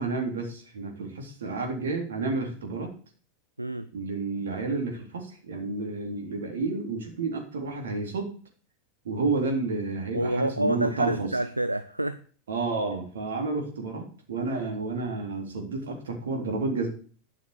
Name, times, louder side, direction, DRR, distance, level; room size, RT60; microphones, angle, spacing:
voice 1, 0.0-2.9 3.9-8.3 9.0-11.3 12.5-16.9, right 3 dB, 70° right, 3 dB, 3.6 m, -30 dB
voice 2, 3.6-3.9 10.1-12.2, right 1 dB, 90° right, 11 dB, 0.6 m, -27 dB
12.0 x 6.6 x 6.8 m, 0.41 s
figure-of-eight pair, 85°, 0 cm